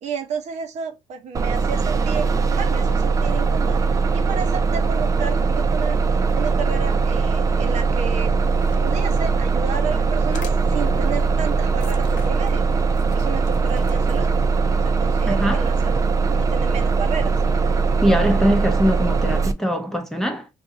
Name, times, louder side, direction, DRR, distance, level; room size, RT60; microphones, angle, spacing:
voice 1, 0.0-6.0 6.3-8.3 8.8-12.6 13.1-14.3 14.7-17.3, right 6 dB, 60° right, 0.8 m, -32 dB
Bus, 1.3-19.5, right 4 dB, 25° right, 0.4 m, -20 dB
sound 1, 8.2-14.5, left 2 dB, 75° left, 0.7 m, -40 dB
voice 2, 15.3-15.7 18.0-20.5, equal, 5° left, 0.7 m, -21 dB
2.7 x 2.6 x 3.6 m
cardioid pair, 110°, 13 cm